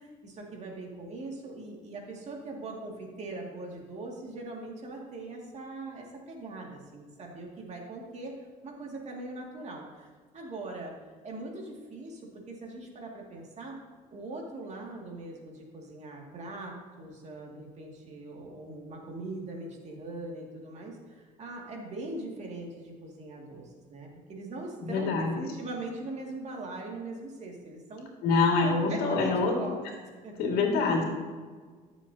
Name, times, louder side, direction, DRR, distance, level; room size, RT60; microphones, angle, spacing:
voice 1, 0.0-8.3 8.6-10.9 11.2-13.8 14.1-28.1 28.6-29.8 30.2-30.5 30.9-31.0, right 2 dB, 45° right, 0 dB, 2.3 m, -41 dB
voice 2, 24.8-25.3 28.2-29.6 30.4-31.0, left 4 dB, 80° left, 1 dB, 2.2 m, -25 dB
14.0 x 7.3 x 2.8 m, 1.5 s
cardioid pair, 105°, 16 cm